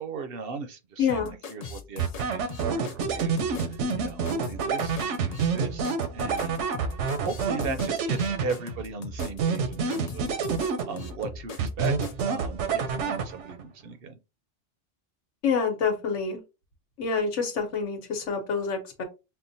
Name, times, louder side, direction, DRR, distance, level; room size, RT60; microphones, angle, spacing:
voice 1, 0.0-2.1 2.3-3.4 4.0-6.7 7.2-10.4 10.9-11.9 12.2-14.2, right 5 dB, 60° right, 0.7 m, -37 dB
voice 2, 1.0-1.3 15.4-16.4 17.0-19.0, left 5 dB, 90° left, 1.3 m, -27 dB
sound 1, 1.1-12.2, left 4 dB, 50° left, 0.4 m, -39 dB
sound 2, 2.0-8.8 9.2-11.2 11.6-13.6, right 5 dB, 85° right, 1.0 m, -28 dB
5.6 x 2.1 x 2.6 m
omnidirectional pair, 1.2 m